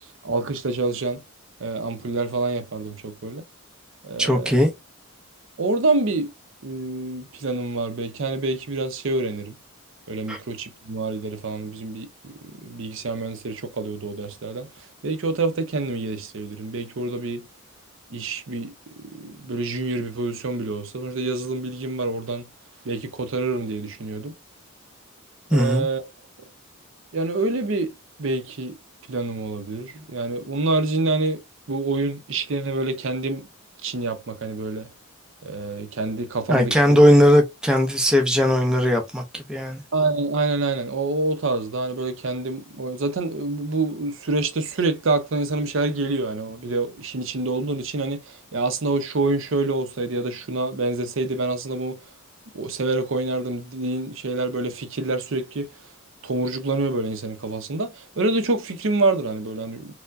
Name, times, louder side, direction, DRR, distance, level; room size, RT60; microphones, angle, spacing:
voice 1, 0.2-1.2 1.6-3.4 4.0-4.6 5.6-6.3 6.6-9.5 10.1-12.3 12.6-14.7 15.0-17.4 18.1-18.7 19.1-22.5 22.8-24.3 25.5-26.1 27.1-27.9 28.2-28.7 29.1-31.4 31.7-33.5 33.8-34.9 35.4-37.0 39.9-52.0 52.5-55.7 56.2-59.9, right 3 dB, 60° right, 0.6 m, -26 dB
voice 2, 4.2-4.7 10.3-10.4 25.5-25.9 36.5-39.8, equal, 5° right, 0.6 m, -18 dB
4.4 x 2.1 x 2.5 m
head